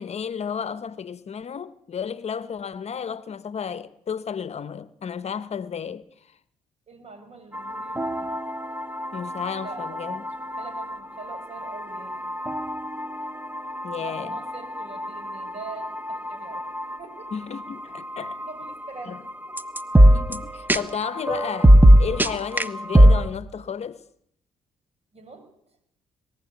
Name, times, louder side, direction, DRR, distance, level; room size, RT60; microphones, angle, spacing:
voice 1, 0.0-6.0 9.1-10.2 13.8-14.4 17.3-18.4 19.1-19.2 20.1-24.0, left 7 dB, 50° left, 1.0 m, -33 dB
voice 2, 6.9-8.3 9.6-10.0 10.4-12.3 14.0-16.7 17.0-17.3 18.4-19.6 20.0-20.5 25.1-25.8, right 4 dB, 50° right, 6.5 m, -44 dB
sound 1, 7.5-23.3, equal, 15° right, 1.2 m, -22 dB
21.5 x 16.0 x 8.3 m
supercardioid pair, 60°, 14 cm